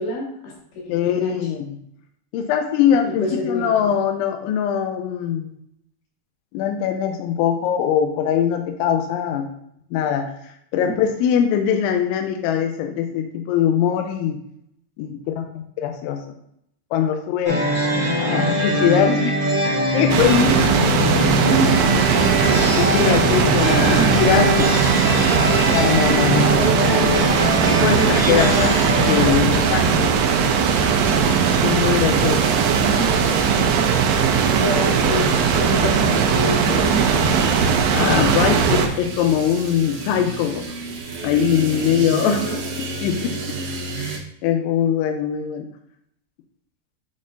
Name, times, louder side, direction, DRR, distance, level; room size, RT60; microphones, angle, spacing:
voice 1, 0.0-1.4 3.0-3.7 21.5-21.7 23.8-24.1 26.5-27.5 27.9-28.7 29.2-29.3 29.6-29.8 32.9-33.2 34.5-37.1 42.2-42.6, equal, 60° left, -4 dB, 4.0 m, -27 dB
voice 2, 0.9-1.8 2.3-5.5 6.5-9.5 9.9-14.4 15.0-15.5 15.8-16.2 16.9-17.6 18.2-19.4 19.9-20.6 20.9-21.0 22.4-24.7 25.6-26.6 27.7-30.1 31.6-32.4 37.7-40.6 41.2-42.4 43.0-43.6 44.0-45.7, left 9 dB, 85° left, 5 dB, 2.7 m, -22 dB
sound 1, 17.4-29.3, equal, 20° right, 0.9 m, -22 dB
sound 2, 20.1-38.9, right 6 dB, 90° right, 2.7 m, -19 dB
sound 3, 30.7-44.2, right 3 dB, 70° right, 2.5 m, -32 dB
10.5 x 4.2 x 2.5 m, 0.74 s
omnidirectional pair, 5.9 m